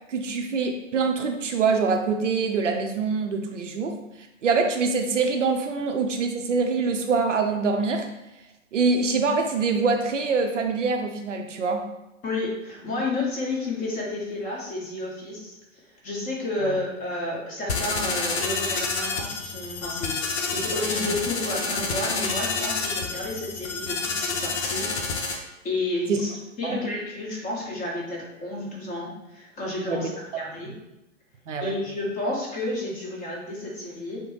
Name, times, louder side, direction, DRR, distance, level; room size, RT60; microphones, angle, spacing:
voice 1, 0.1-4.0 4.4-8.1 8.7-11.8 16.6-16.8 26.1-26.2 26.6-26.8 29.9-30.1 31.5-31.8, right 4 dB, 65° right, 4 dB, 0.6 m, -24 dB
voice 2, 12.2-15.6 16.0-26.3 26.6-30.7 31.6-34.2, left 2 dB, 20° left, -4 dB, 1.1 m, -31 dB
sound 1, 17.7-25.4, left 4 dB, 55° left, 0.8 m, -28 dB
6.4 x 2.1 x 3.1 m, 0.94 s
figure-of-eight pair, 110°, 40 cm